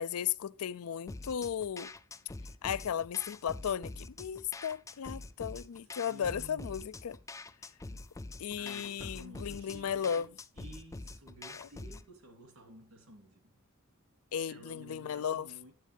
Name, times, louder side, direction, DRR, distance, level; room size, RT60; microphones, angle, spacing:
voice 1, 0.0-1.9 2.6-7.2 8.4-10.3 11.6-11.7 14.3-15.5, left 8 dB, 80° left, 0.4 m, -35 dB
sound 1, 1.1-12.1, left 2 dB, 15° left, 0.4 m, -46 dB
voice 2, 6.1-6.7 8.6-10.3 10.6-13.6 14.5-15.7, right 1 dB, 70° right, 2.9 m, -53 dB
10.0 x 8.2 x 3.4 m
head